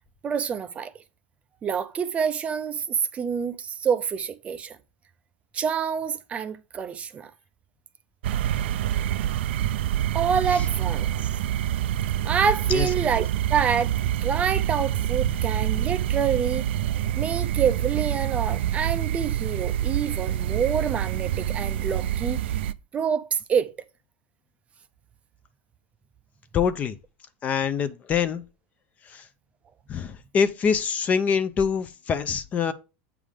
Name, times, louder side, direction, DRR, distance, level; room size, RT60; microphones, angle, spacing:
voice 1, 0.2-0.9 1.6-4.8 5.5-7.3 10.1-11.1 12.2-13.9 14.2-16.7 17.2-22.4 22.9-23.7, right 7 dB, 20° right, 0.5 m, -27 dB
sound 1, 8.2-22.7, right 11 dB, 85° right, 0.4 m, -26 dB
voice 2, 26.5-27.0 27.4-28.4 29.1-29.2 29.9-32.7, left 6 dB, 25° left, 0.5 m, -25 dB
8.4 x 3.7 x 4.9 m
supercardioid pair, 150°, 6 cm